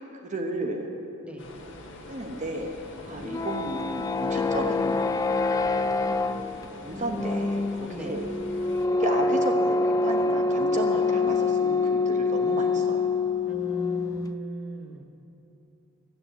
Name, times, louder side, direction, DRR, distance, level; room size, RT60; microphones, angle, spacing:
voice 1, 0.2-0.9 2.1-2.7 3.0-5.1 6.8-8.3 9.0-13.1, right 1 dB, 35° right, 3 dB, 0.9 m, -33 dB
voice 2, 1.2-1.6 7.9-8.1 13.5-15.0, equal, 5° right, 1 dB, 1.0 m, -36 dB
sound 1, 1.4-8.9, left 2 dB, 60° left, 1.4 m, -44 dB
sound 2, 3.1-14.3, left 3 dB, 15° left, 0.3 m, -26 dB
12.5 x 8.5 x 8.1 m, 2.9 s
head